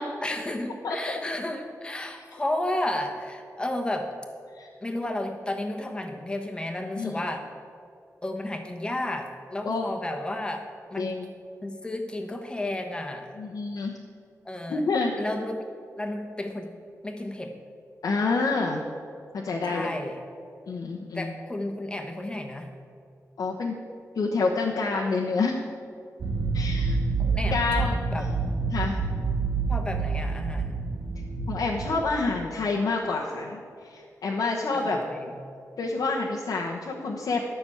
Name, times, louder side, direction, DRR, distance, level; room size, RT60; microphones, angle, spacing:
voice 1, 0.2-4.1 4.8-7.5 8.2-11.2 11.6-13.4 14.4-14.9 15.2-15.6 16.0-16.7 17.0-17.5 19.6-20.2 20.9-22.7 27.2-28.3 29.7-30.8 34.7-35.3, left 1 dB, 15° left, 4 dB, 1.2 m, -32 dB
voice 2, 0.8-1.2 4.5-4.7 7.0-7.2 9.6-9.9 11.0-11.3 13.4-14.0 14.7-15.1 18.0-18.8 19.3-19.9 20.7-21.3 23.4-23.7 24.1-25.6 26.5-27.0 27.5-28.0 28.7-29.0 31.5-35.0 35.8-37.4, left 3 dB, 85° left, -3 dB, 1.1 m, -28 dB
sound 1, 26.2-31.9, right 4 dB, 75° right, 1.2 m, -27 dB
12.5 x 6.2 x 8.5 m, 2.3 s
wide cardioid pair, 165°, 6 cm